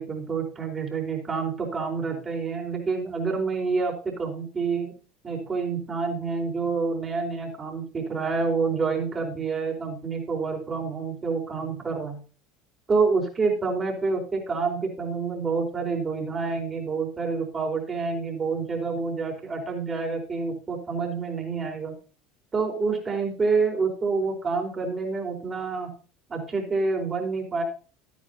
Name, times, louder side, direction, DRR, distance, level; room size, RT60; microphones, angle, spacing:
voice 1, 0.0-4.9 5.2-12.2 12.9-21.9 22.5-25.9 26.3-27.6, right 4 dB, 25° right, 1 dB, 4.6 m, -28 dB
13.5 x 10.5 x 2.9 m, 0.37 s
figure-of-eight pair, 70°, 0 cm